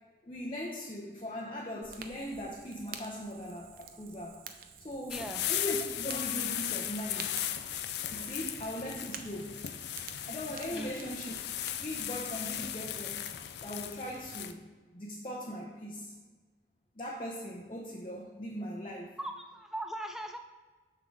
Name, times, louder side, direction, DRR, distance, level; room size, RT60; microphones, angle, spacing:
voice 1, 0.3-4.4 4.8-7.3 8.1-9.6 10.3-11.4 11.6-13.2 13.6-14.6 14.9-16.1 17.0-19.1, equal, 30° left, -2 dB, 0.8 m, -39 dB
Fire, 1.8-12.9, right 7 dB, 50° right, 0.6 m, -50 dB
sound 1, 5.1-14.5, left 11 dB, 60° left, 0.4 m, -37 dB
voice 2, 5.1-5.5 10.7-10.9 19.2-20.4, right 1 dB, ahead, 5 dB, 0.3 m, -39 dB
7.1 x 3.8 x 6.4 m, 1.4 s
head